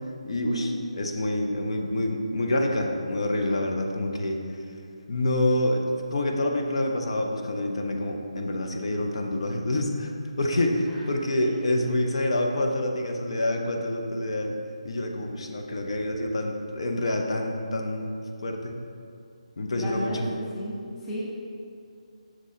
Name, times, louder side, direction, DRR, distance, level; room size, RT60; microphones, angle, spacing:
voice 1, 0.2-4.4 5.1-10.1 10.4-14.6 14.8-18.8 19.6-20.3, left 1 dB, 50° left, 2 dB, 0.6 m, -27 dB
voice 2, 19.7-20.8 21.0-21.2, equal, 5° left, -7 dB, 0.5 m, -33 dB
6.1 x 3.7 x 4.2 m, 2.4 s
figure-of-eight pair, 170°, 4 cm